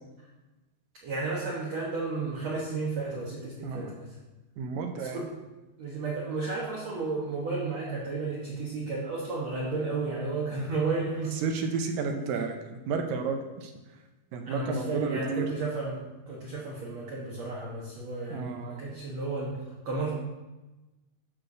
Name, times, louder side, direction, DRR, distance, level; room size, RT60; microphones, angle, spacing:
voice 1, 1.0-4.2 4.9-5.3 5.8-11.4 12.1-12.3 14.5-16.0 16.3-19.6 19.9-20.1, right 3 dB, 60° right, -4 dB, 2.0 m, -33 dB
voice 2, 3.6-3.9 4.6-5.2 11.4-13.7 14.3-15.5 18.3-18.8, right 4 dB, 75° right, 4 dB, 2.3 m, -32 dB
11.5 x 4.6 x 6.6 m, 1.1 s
omnidirectional pair, 4.6 m